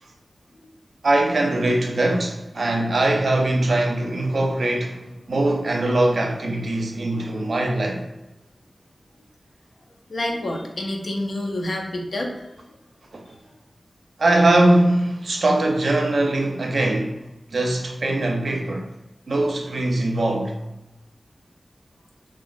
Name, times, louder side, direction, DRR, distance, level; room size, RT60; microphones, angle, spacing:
voice 1, 1.0-5.0 5.3-8.1 13.1-13.2 14.2-17.2 17.5-18.9 19.3-20.5, right 2 dB, 70° right, 0.5 m, -21 dB
voice 2, 10.1-12.6, left 1 dB, 65° left, 0.5 m, -28 dB
2.9 x 2.3 x 2.5 m
wide cardioid pair, 95°, 0 cm